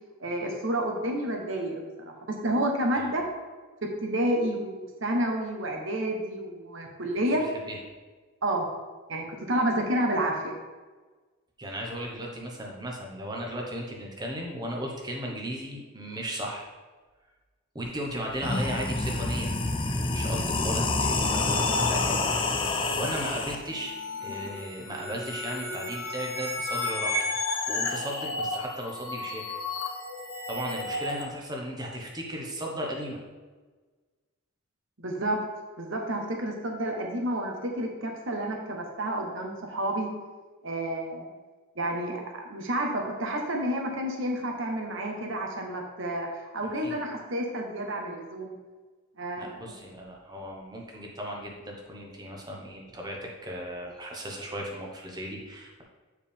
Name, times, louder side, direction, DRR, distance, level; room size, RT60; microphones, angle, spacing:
voice 1, 0.2-2.1 2.4-3.2 4.0-7.4 8.4-8.7 9.1-10.5 35.0-35.4 35.8-40.1 40.6-41.3 41.8-48.5 49.2-49.5, right 1 dB, 65° right, 1 dB, 1.1 m, -30 dB
voice 2, 7.3-7.8 11.6-16.7 17.7-19.6 19.8-22.4 22.9-23.9 24.2-27.2 27.7-29.6 30.5-33.2 46.8-47.0 49.4-55.8, equal, 20° right, -1 dB, 1.0 m, -36 dB
sound 1, 17.8-17.9 18.3-23.6, left 3 dB, 25° left, 0.4 m, -27 dB
sound 2, 20.6-31.2, left 2 dB, 75° left, 1.1 m, -34 dB
8.8 x 4.8 x 3.5 m, 1.3 s
head